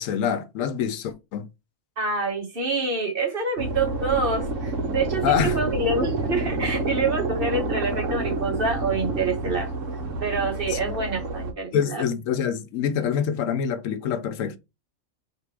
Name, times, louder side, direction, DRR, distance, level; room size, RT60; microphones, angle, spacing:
voice 1, 0.0-1.5 5.2-5.6 10.7-10.9 11.7-14.6, left 8 dB, 80° left, 1.0 m, -26 dB
voice 2, 2.0-9.7 10.2-12.0, right 3 dB, 45° right, 1.3 m, -26 dB
sound 1, 3.6-11.5, right 2 dB, 70° right, 1.3 m, -28 dB
3.4 x 2.9 x 4.6 m
omnidirectional pair, 1.4 m